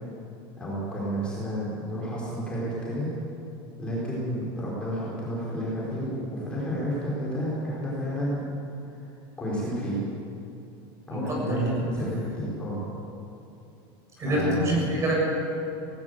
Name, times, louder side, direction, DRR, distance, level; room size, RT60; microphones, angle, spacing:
voice 1, 0.6-3.1 3.8-8.4 9.0-9.1 9.4-10.0 11.1-12.8 14.2-14.8, equal, 10° left, -7 dB, 5.4 m, -31 dB
voice 2, 11.1-11.8 14.2-15.2, right 1 dB, 25° right, -2 dB, 7.1 m, -26 dB
19.0 x 17.5 x 8.5 m, 2.8 s
supercardioid pair, 160°, 13 cm